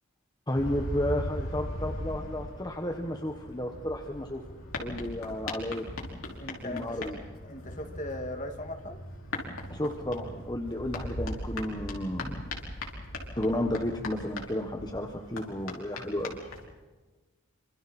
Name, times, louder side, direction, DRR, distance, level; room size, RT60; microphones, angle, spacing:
sound 1, 0.5-16.7, left 1 dB, 75° left, 5.0 m, -39 dB
voice 1, 0.5-4.4 4.8-5.9 6.6-7.2 9.7-12.5 13.4-16.4, left 1 dB, 20° left, 3 dB, 1.4 m, -32 dB
voice 2, 6.4-7.1 7.4-9.0, left 1 dB, 35° left, 5 dB, 2.2 m, -38 dB
26.5 x 26.0 x 4.4 m, 1.2 s
head